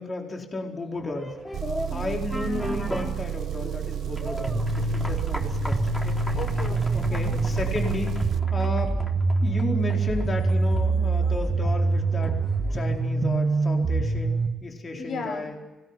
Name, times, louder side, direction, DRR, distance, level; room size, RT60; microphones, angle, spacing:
voice 1, 0.0-1.4 1.8-6.2 6.9-8.1 8.5-9.0 9.4-12.4 12.7-15.6, left 2 dB, 35° left, 1 dB, 4.5 m, -33 dB
sound 1, 0.9-13.7, left 1 dB, 15° left, 4.1 m, -38 dB
Engine, 1.5-8.4, right 11 dB, 65° right, 0.9 m, -32 dB
sound 2, 4.5-14.5, right 3 dB, 45° right, 2.2 m, -25 dB
voice 2, 6.3-7.4 14.9-15.6, left 4 dB, 65° left, 7 dB, 5.3 m, -36 dB
25.5 x 19.0 x 10.0 m, 1.1 s
cardioid pair, 90°, 0 cm